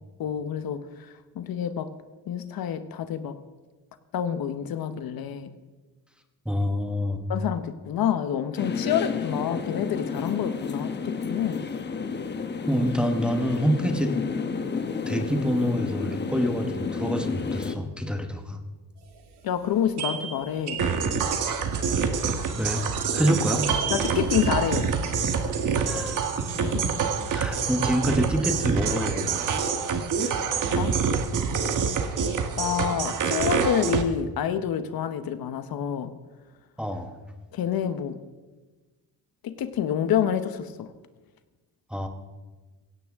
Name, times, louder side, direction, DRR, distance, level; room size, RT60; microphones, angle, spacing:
voice 1, 0.2-1.9 2.3-3.4 4.1-5.5 7.3-11.7 19.4-20.8 23.9-24.9 26.6-26.9 30.7-31.0 32.6-36.1 37.5-38.2 39.4-40.9, left 9 dB, 65° left, 10 dB, 1.0 m, -28 dB
voice 2, 6.4-7.2 12.7-14.1 15.1-18.6 22.6-22.8 23.1-23.7 25.8-26.2 27.3-29.6 36.8-37.1 41.9-42.1, equal, ahead, 4 dB, 1.0 m, -26 dB
sound 1, 8.6-17.7, left 5 dB, 25° left, 0.9 m, -31 dB
sound 2, 19.1-19.2 19.5-19.6 20.0-25.6, right 7 dB, 80° right, 2.1 m, -36 dB
sound 3, 20.8-34.0, right 6 dB, 50° right, 1.3 m, -26 dB
17.0 x 16.5 x 3.6 m, 1.3 s
cardioid pair, 150°, 39 cm